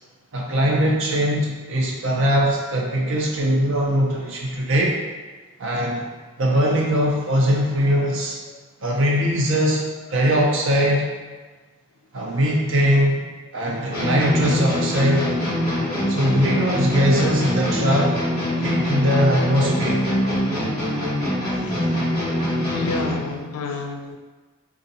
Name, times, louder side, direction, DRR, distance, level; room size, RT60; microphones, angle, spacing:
voice 1, 0.3-5.0 5.6-6.0 6.4-8.4 8.8-11.1 12.1-13.2 13.5-15.3 16.1-18.1 18.6-20.0, equal, 60° right, -2 dB, 0.7 m, -21 dB
sound 1, 13.9-23.3, equal, 20° left, 1.3 m, -23 dB
voice 2, 21.5-22.0 22.7-24.2, left 4 dB, 85° left, 6 dB, 0.3 m, -32 dB
3.8 x 2.4 x 2.7 m, 1.4 s
head